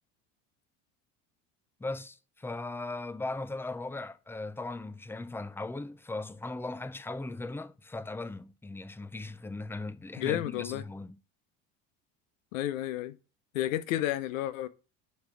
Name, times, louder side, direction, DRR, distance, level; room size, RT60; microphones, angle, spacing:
voice 1, 1.8-11.2, left 2 dB, 5° left, 0.5 m, -38 dB
voice 2, 10.2-10.8 12.5-13.1 13.5-14.7, left 13 dB, 85° left, 0.8 m, -31 dB
5.7 x 5.7 x 3.8 m
supercardioid pair, 90°, 38 cm